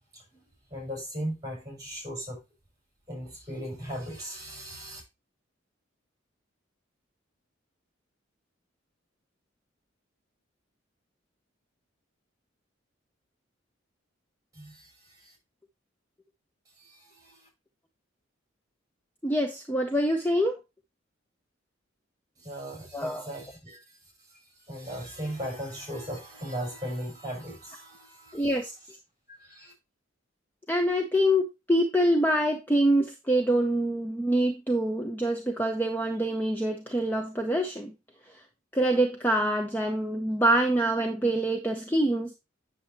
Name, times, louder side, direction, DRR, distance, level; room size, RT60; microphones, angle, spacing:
voice 1, 0.7-2.4 3.1-5.0 14.5-15.4 16.8-17.5 22.4-28.6 29.3-29.7, equal, 20° right, 5.6 m, -38 dB
voice 2, 19.2-20.6 22.9-23.2 28.3-28.7 30.7-37.9 38.7-42.3, right 1 dB, 10° left, 0.8 m, -25 dB
8.5 x 7.1 x 2.9 m
head